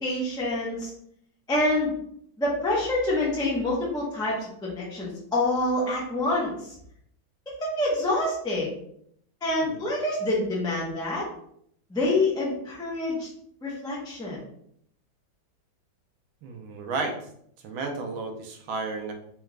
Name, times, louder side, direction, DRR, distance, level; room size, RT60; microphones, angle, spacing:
voice 1, 0.0-0.9 1.5-1.9 2.4-6.7 7.5-8.8 9.4-11.3 11.9-13.3 13.6-14.4, left 2 dB, 5° left, -5 dB, 0.4 m, -27 dB
voice 2, 16.4-17.3 17.6-19.1, right 3 dB, 85° right, 3 dB, 1.5 m, -33 dB
4.4 x 2.4 x 3.2 m, 0.69 s
omnidirectional pair, 2.1 m